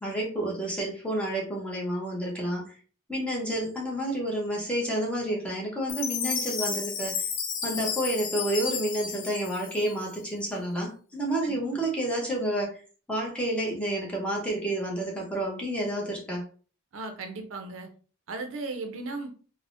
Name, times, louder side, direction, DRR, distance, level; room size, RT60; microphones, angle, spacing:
voice 1, 0.0-2.8 3.1-7.1 7.6-12.8 13.1-16.4, right 1 dB, 5° left, -3 dB, 0.7 m, -30 dB
Chime, 5.9-10.3, left 6 dB, 40° left, 0.4 m, -32 dB
voice 2, 16.9-17.9 18.3-19.3, right 3 dB, 65° right, 5 dB, 0.5 m, -36 dB
3.4 x 2.0 x 2.5 m, 0.39 s
head